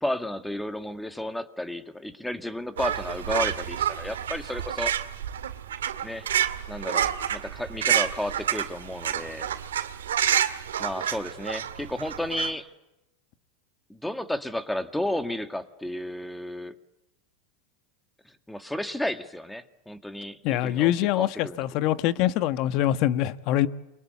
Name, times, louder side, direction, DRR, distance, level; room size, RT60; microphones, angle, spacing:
voice 1, 0.0-4.9 6.0-6.3 6.7-9.5 10.8-12.7 13.9-16.8 18.3-21.9, left 1 dB, 5° left, 1.9 m, -32 dB
sound 1, 2.8-12.5, right 10 dB, 85° right, 2.1 m, -29 dB
voice 2, 20.4-23.7, left 13 dB, 55° left, 1.2 m, -24 dB
29.0 x 23.5 x 8.2 m
hypercardioid pair, 105°, 0 cm